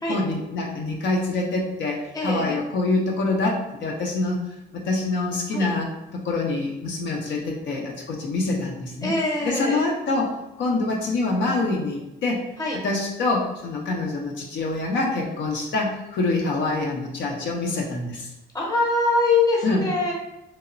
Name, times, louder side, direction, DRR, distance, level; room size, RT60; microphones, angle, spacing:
voice 1, 0.1-4.4 4.7-9.2 9.4-12.4 12.8-18.3 19.6-19.9, left 2 dB, 70° left, -1 dB, 0.5 m, -25 dB
voice 2, 2.1-2.6 5.5-5.7 9.0-9.8 12.6-12.8 18.5-20.1, left 3 dB, 20° left, -3 dB, 0.8 m, -23 dB
2.9 x 2.0 x 2.4 m, 0.90 s
cardioid pair, 90°, 20 cm